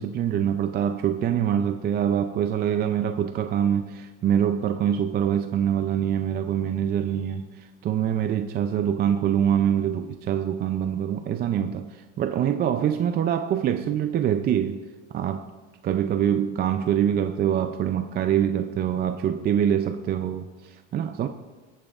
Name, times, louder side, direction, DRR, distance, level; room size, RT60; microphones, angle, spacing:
voice 1, 0.0-14.8 15.1-15.5 15.8-21.3, right 9 dB, 30° right, 0.4 m, -25 dB
19.0 x 8.8 x 2.4 m
cardioid pair, 135°, 35 cm